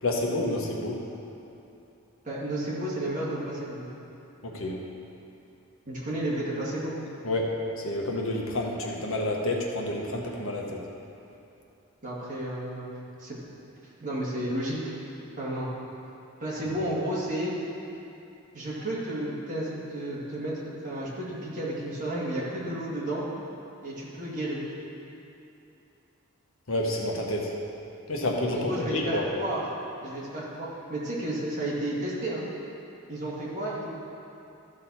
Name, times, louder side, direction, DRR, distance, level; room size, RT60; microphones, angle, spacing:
voice 1, 0.0-1.0 4.4-4.8 7.2-10.8 26.7-27.5 28.1-29.3, left 1 dB, 70° left, 0 dB, 1.2 m, -29 dB
voice 2, 2.2-3.9 5.9-6.9 12.0-12.8 13.2-13.4 14.0-14.9 15.4-15.7 16.4-17.5 18.5-23.2 23.8-24.6 28.5-29.6 30.0-32.4 33.1-33.8, right 1 dB, 35° right, -7 dB, 2.1 m, -32 dB
13.5 x 6.4 x 4.2 m, 2.8 s
head